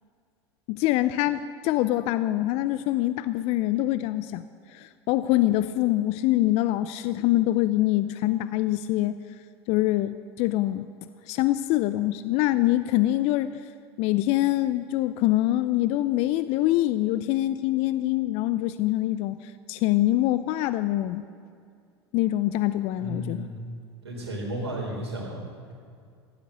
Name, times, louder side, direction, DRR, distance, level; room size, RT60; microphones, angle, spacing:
voice 1, 0.7-4.4 4.7-9.2 9.7-10.8 11.3-13.6 14.0-21.2 22.1-23.5, left 15 dB, 50° left, 13 dB, 0.5 m, -24 dB
voice 2, 23.0-23.7 24.0-25.7, right 1 dB, 80° right, -2 dB, 4.0 m, -34 dB
15.0 x 10.5 x 6.8 m, 2.3 s
hypercardioid pair, 85°, 14 cm